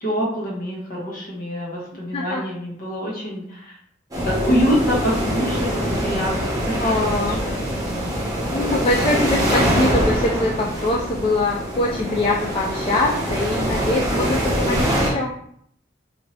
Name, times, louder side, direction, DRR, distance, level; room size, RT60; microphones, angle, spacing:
voice 1, 0.0-3.8 4.2-5.7 6.0-7.6, equal, 50° left, -4 dB, 1.1 m, -25 dB
sound 1, 4.1-15.1, equal, 20° right, 0.9 m, -23 dB
voice 2, 6.8-7.4 8.5-15.3, left 2 dB, 30° left, -2 dB, 0.3 m, -23 dB
2.8 x 2.6 x 3.0 m, 0.67 s
head